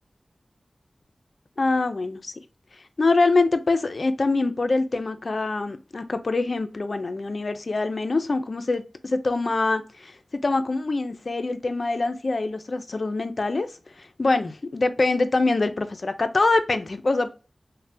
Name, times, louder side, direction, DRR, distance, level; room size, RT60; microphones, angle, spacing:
voice 1, 1.6-2.3 3.0-13.7 14.0-17.3, left 3 dB, 60° left, 0.4 m, -24 dB
3.2 x 2.1 x 2.6 m
wide cardioid pair, 60°, 0 cm